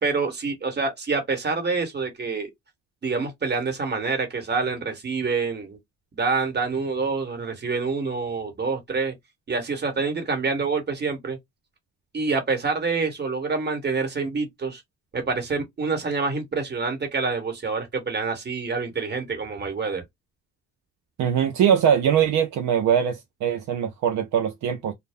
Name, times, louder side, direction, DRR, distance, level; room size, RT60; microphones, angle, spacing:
voice 1, 0.0-2.5 3.0-5.8 6.1-9.1 9.5-11.4 12.1-14.8 15.1-20.0, right 4 dB, 35° right, 1.3 m, -27 dB
voice 2, 21.2-24.9, right 8 dB, 70° right, 0.5 m, -22 dB
2.2 x 2.0 x 3.4 m
cardioid pair, 90°, 30 cm